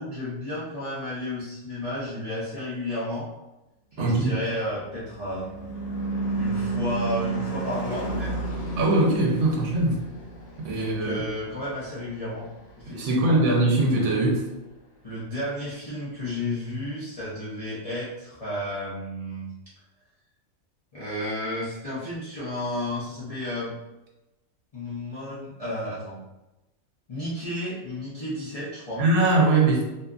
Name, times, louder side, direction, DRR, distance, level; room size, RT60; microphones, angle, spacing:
voice 1, 0.0-3.3 4.0-5.5 6.3-8.3 10.7-12.5 12.8-13.4 15.0-19.5 20.9-23.7 24.7-26.2 27.1-29.0, left 1 dB, 40° left, -11 dB, 0.6 m, -32 dB
voice 2, 4.0-4.3 8.8-10.0 10.6-11.2 12.9-14.5 29.0-29.8, right 2 dB, 65° right, -2 dB, 0.9 m, -21 dB
Car passing by / Truck / Engine, 4.6-13.1, right 3 dB, 80° left, 1.1 m, -32 dB
2.8 x 2.4 x 2.3 m, 0.98 s
omnidirectional pair, 1.4 m